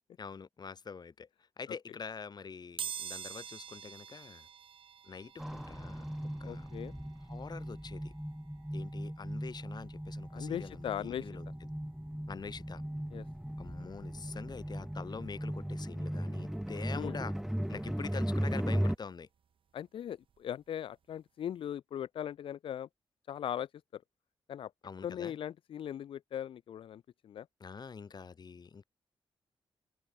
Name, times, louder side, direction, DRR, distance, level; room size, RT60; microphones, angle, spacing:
voice 1, 0.2-1.3 1.6-4.5 5.0-6.0 6.4-6.7 7.3-8.1 8.7-11.4 12.3-12.8 13.6-17.3 17.7-19.3 24.8-25.3 27.6-28.8, left 5 dB, 50° left, 3.1 m, -45 dB
sound 1, 2.8-13.4 13.9-14.0 15.2-15.3 15.5-17.6 18.0-20.6 21.0-21.2 21.5-21.6, right 8 dB, 70° right, 1.7 m, -49 dB
sound 2, 5.4-19.0, equal, 5° right, 0.9 m, -37 dB
voice 2, 6.4-6.9 10.3-11.3 13.1-13.3 17.0-17.2 19.7-22.9 23.3-24.0 24.5-24.7 25.0-27.5, left 10 dB, 70° left, 0.4 m, -39 dB
open air
cardioid pair, 90°, 9 cm